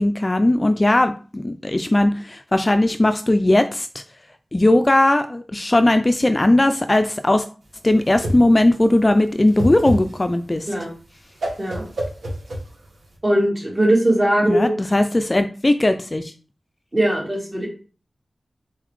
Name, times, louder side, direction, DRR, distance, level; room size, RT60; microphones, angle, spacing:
voice 1, 0.0-4.0 4.5-7.4 7.8-10.7 14.4-16.3, left 1 dB, 25° left, 8 dB, 0.3 m, -18 dB
Whoosh swoosh swish, 7.6-13.1, equal, 85° right, 1.4 m, -29 dB
voice 2, 13.2-14.7 16.9-17.7, right 1 dB, 30° right, -2 dB, 1.6 m, -19 dB
4.1 x 3.9 x 3.1 m, 0.37 s
wide cardioid pair, 100°, 0 cm